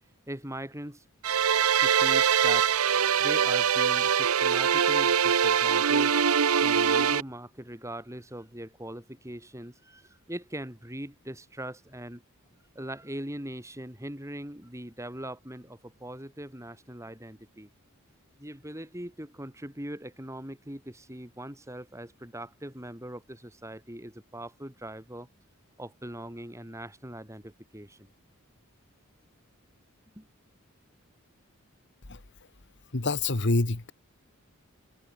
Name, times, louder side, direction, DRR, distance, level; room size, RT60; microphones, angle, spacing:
voice 1, 0.3-1.0 1.8-2.7 3.2-6.1 6.6-10.0 10.3-12.2 12.7-17.7 18.4-25.3 25.8-27.9 30.2-30.3, right 1 dB, 15° right, 6.6 m, -40 dB
sound 1, 1.2-7.2, right 7 dB, 85° right, 0.8 m, -23 dB
voice 2, 32.9-33.9, left 2 dB, 55° left, 1.4 m, -26 dB
head